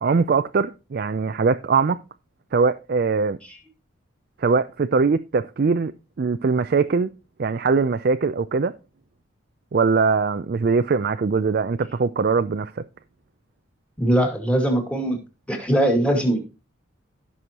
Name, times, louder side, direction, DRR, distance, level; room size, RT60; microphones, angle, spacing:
voice 1, 0.0-2.0 2.5-3.4 4.4-5.9 6.2-7.1 7.4-8.7 9.7-12.8, right 4 dB, 45° right, 0.4 m, -21 dB
voice 2, 14.0-15.2 15.5-16.4, right 1 dB, 5° left, 2.1 m, -21 dB
16.0 x 6.2 x 2.9 m
head